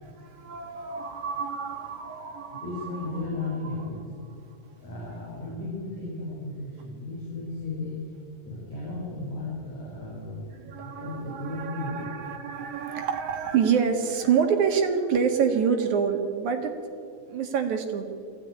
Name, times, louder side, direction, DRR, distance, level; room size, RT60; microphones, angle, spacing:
voice 1, 0.0-3.2 3.6-3.9 10.5-16.7 17.3-18.1, right 6 dB, 60° right, 4 dB, 3.0 m, -27 dB
voice 2, 2.6-4.1 4.8-8.0 8.4-10.5 10.8-12.2, left 2 dB, 50° left, -5 dB, 6.2 m, -35 dB
22.5 x 16.0 x 9.9 m, 2.3 s
omnidirectional pair, 4.1 m